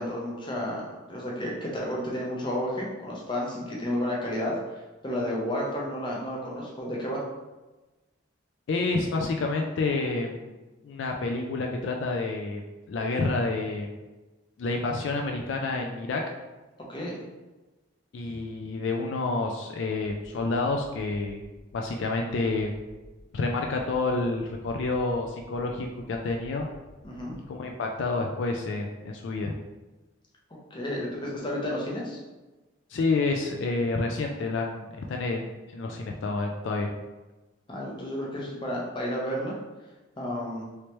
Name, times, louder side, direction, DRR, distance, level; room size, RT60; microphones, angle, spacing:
voice 1, 0.0-7.2 16.9-17.2 27.0-27.4 30.7-32.2 37.7-39.6 40.2-40.6, equal, 25° left, -3 dB, 0.6 m, -31 dB
voice 2, 8.7-10.5 10.8-12.6 12.9-13.9 14.6-16.2 18.1-21.4 21.7-22.7 23.3-26.7 27.5-29.5 32.9-36.9, left 3 dB, 65° left, 2 dB, 0.3 m, -29 dB
sound 1, 22.8-27.4, left 1 dB, 30° right, 0.9 m, -52 dB
3.2 x 3.0 x 2.9 m, 1.2 s
head